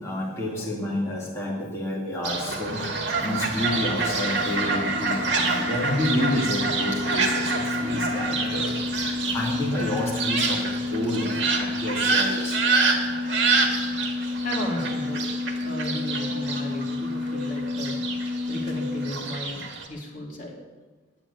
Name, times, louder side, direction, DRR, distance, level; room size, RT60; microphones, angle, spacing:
voice 1, 0.0-12.8, left 1 dB, 15° left, -5 dB, 2.4 m, -30 dB
Fowl, 2.2-19.9, right 3 dB, 65° right, 2.1 m, -27 dB
sound 1, 2.9-19.1, left 3 dB, 20° right, 1.9 m, -31 dB
voice 2, 14.4-15.3 15.6-18.0 18.3-20.6, left 1 dB, 40° left, -2 dB, 2.9 m, -35 dB
9.9 x 8.9 x 10.0 m, 1.3 s
head